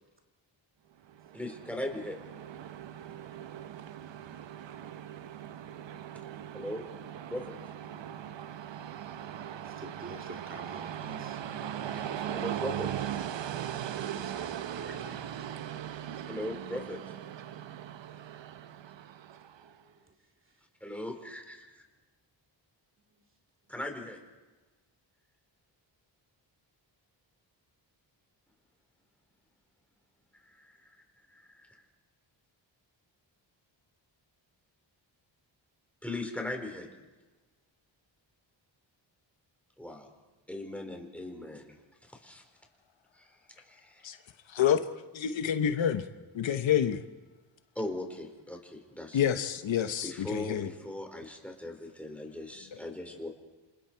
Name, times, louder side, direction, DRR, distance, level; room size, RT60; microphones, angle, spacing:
Train, 1.1-19.7, right 10 dB, 70° right, 0.9 m, -39 dB
voice 1, 1.3-2.2 6.5-6.9 7.3-7.6 12.3-12.9 16.3-17.0 20.8-21.8 23.7-24.2 30.5-31.0 31.3-31.8 36.0-36.9 39.8-40.1 40.5-41.8 42.0-42.4 43.1-44.1 47.7-49.4 50.0-53.3, left 1 dB, 5° left, 4.4 m, -39 dB
voice 2, 9.0-11.4 11.8-12.5 14.1-15.3 19.6-20.1 23.1-23.2, right 2 dB, 25° right, 2.6 m, -49 dB
voice 3, 44.5-44.8 45.1-46.0 46.3-47.0 49.1-50.7, left 9 dB, 75° left, 1.1 m, -28 dB
28.0 x 28.0 x 4.6 m
wide cardioid pair, 100°, 46 cm